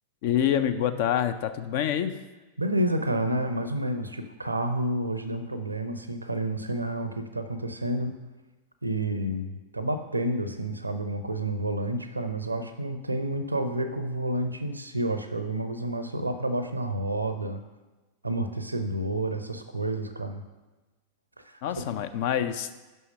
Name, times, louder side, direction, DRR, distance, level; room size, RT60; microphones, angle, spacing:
voice 1, 0.2-2.2 21.6-22.8, left 10 dB, 50° left, 11 dB, 0.5 m, -26 dB
voice 2, 2.6-8.2 8.8-17.6 18.2-20.4, right 1 dB, 85° right, 8 dB, 0.6 m, -29 dB
5.9 x 5.6 x 5.3 m, 1.2 s
figure-of-eight pair, 90°, 0 cm